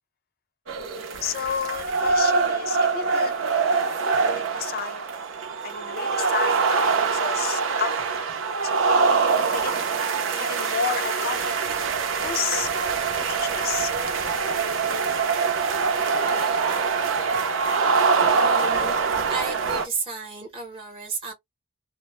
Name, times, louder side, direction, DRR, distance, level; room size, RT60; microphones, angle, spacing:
sound 1, 0.7-19.8, right 5 dB, 65° right, 0.6 m, -24 dB
voice 1, 1.2-3.3 4.2-5.1 5.6-8.2 8.6-9.0 9.5-10.1 10.3-11.5 12.2-12.7 13.2-13.9, left 7 dB, 45° left, 0.4 m, -31 dB
voice 2, 18.3-18.9 19.3-21.3, right 3 dB, 25° right, 0.8 m, -33 dB
2.1 x 2.0 x 2.9 m
head